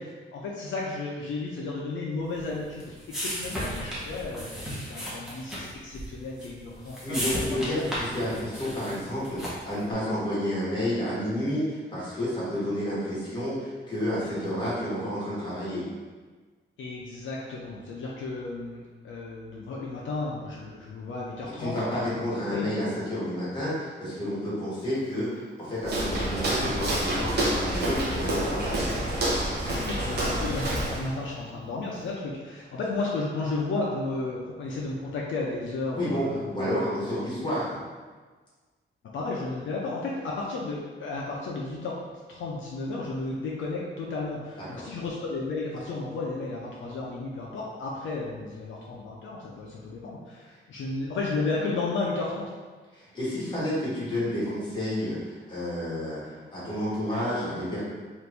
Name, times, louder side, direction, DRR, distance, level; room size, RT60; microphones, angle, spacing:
voice 1, 0.0-7.3 7.7-7.9 14.2-14.4 16.8-22.7 29.7-36.5 39.1-42.0 42.3-52.5, left 3 dB, 70° left, -4 dB, 0.5 m, -33 dB
sound 1, 2.3-9.8, equal, 5° right, 0.7 m, -35 dB
voice 2, 7.0-15.8 21.6-28.8 35.9-36.3 36.5-37.8 44.6-44.8 52.9-57.8, equal, 20° left, -9 dB, 1.2 m, -30 dB
Walk footsteps, 25.8-31.1, right 1 dB, 55° right, 0.7 m, -28 dB
2.9 x 2.5 x 3.4 m, 1.4 s
wide cardioid pair, 175°, 21 cm